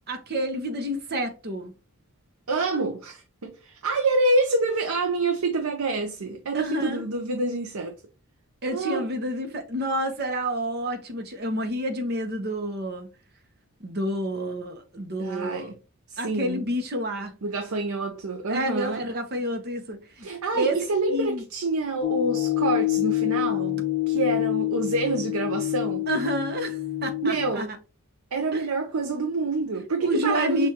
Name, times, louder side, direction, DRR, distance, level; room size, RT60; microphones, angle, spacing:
voice 1, 0.1-1.7 6.5-7.0 8.6-13.1 13.8-15.7 16.2-17.3 18.5-20.3 20.5-20.8 21.1-21.4 26.1-27.8 28.5-28.6 30.0-30.7, equal, 45° right, 0.9 m, -29 dB
voice 2, 2.5-7.9 8.7-9.1 15.2-15.8 16.1-16.7 17.4-19.0 20.2-26.1 27.2-27.7 28.3-30.7, right 3 dB, 85° right, 0.7 m, -27 dB
sound 1, 22.0-27.5, left 17 dB, 50° left, 0.6 m, -27 dB
6.6 x 2.5 x 2.9 m
head